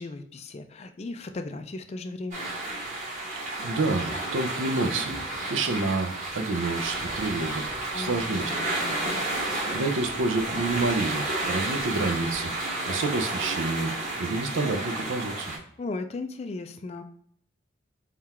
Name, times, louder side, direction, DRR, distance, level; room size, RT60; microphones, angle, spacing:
voice 1, 0.0-2.5 7.9-9.3 15.8-17.0, left 3 dB, 30° left, 8 dB, 0.3 m, -37 dB
sound 1, 2.3-15.6, right 2 dB, 35° right, 1.4 m, -31 dB
voice 2, 3.3-5.2 5.5-7.7 7.9-8.7 9.7-12.5 12.8-13.9 14.2-15.5, right 3 dB, 70° right, 7 dB, 0.5 m, -28 dB
3.7 x 2.4 x 4.2 m, 0.63 s
head